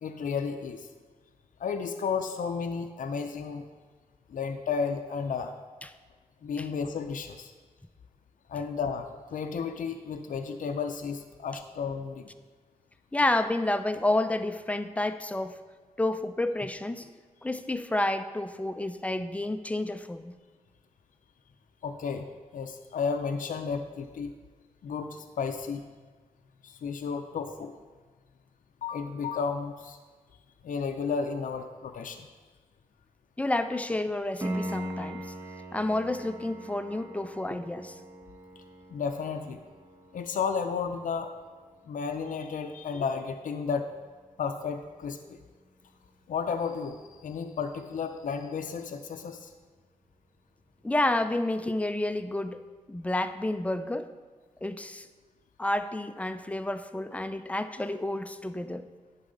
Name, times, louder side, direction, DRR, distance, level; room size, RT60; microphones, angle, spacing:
voice 1, 0.0-0.9 1.6-3.7 4.3-5.5 6.4-7.5 8.5-12.3 21.8-22.3 22.5-24.3 24.8-25.8 26.6-27.7 28.8-30.0 30.6-32.3 38.6-38.7 38.9-39.6 40.1-41.3 41.9-43.9 44.4-45.4 46.3-49.5, left 5 dB, 70° left, 6 dB, 0.4 m, -33 dB
voice 2, 13.1-15.6 16.0-17.1 17.4-20.4 33.4-35.3 35.7-38.0 50.8-52.6 52.9-54.1 54.6-55.1 55.6-58.9, left 1 dB, 10° left, 10 dB, 0.4 m, -30 dB
Piano, 34.4-45.1 48.4-48.5, right 1 dB, 20° right, 1.1 m, -42 dB
10.5 x 4.1 x 3.9 m, 1.4 s
cardioid pair, 75°, 14 cm